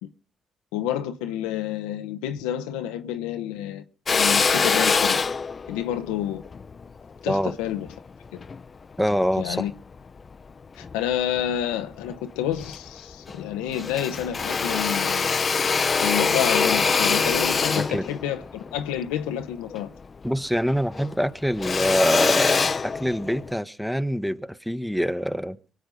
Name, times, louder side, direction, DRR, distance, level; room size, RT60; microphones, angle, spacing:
voice 1, 0.7-3.8 4.1-5.2 5.7-6.4 7.2-7.9 8.3-8.4 9.4-9.7 10.8-15.3 16.0-19.9, left 11 dB, 90° left, 1.0 m, -29 dB
Drill, 4.1-8.6 9.2-10.3 10.8-11.7 12.1-12.2 12.5-13.5 13.7-20.4 20.7-23.5, left 5 dB, 45° left, 0.8 m, -25 dB
voice 2, 9.0-9.7 17.7-18.0 20.2-25.6, equal, 5° right, 1.3 m, -25 dB
24.0 x 8.1 x 5.2 m
hypercardioid pair, 45°, 0 cm